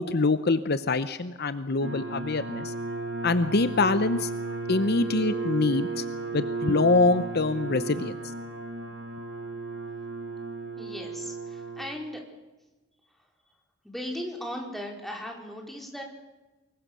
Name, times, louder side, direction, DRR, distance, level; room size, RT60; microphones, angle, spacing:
voice 1, 0.0-2.7 3.2-6.0 6.3-8.2, left 3 dB, 55° left, 12 dB, 0.9 m, -25 dB
sound 1, 1.8-11.9, right 3 dB, 80° right, 3.5 m, -34 dB
voice 2, 10.8-12.2 13.1-13.3 13.8-16.0, equal, ahead, 0 dB, 4.8 m, -37 dB
25.0 x 22.0 x 6.8 m, 1.1 s
head